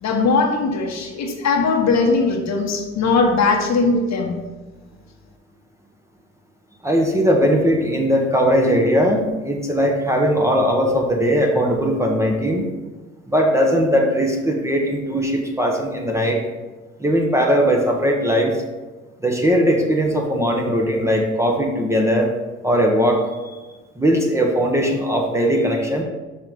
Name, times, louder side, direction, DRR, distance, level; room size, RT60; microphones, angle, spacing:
voice 1, 0.0-4.3, left 4 dB, 60° left, 2 dB, 1.3 m, -19 dB
voice 2, 6.8-12.6 13.3-16.4 17.0-18.6 19.2-22.3 22.6-23.2 24.0-26.0, equal, 10° right, 0 dB, 1.5 m, -19 dB
5.8 x 5.6 x 5.5 m, 1.2 s
cardioid pair, 85°, 30 cm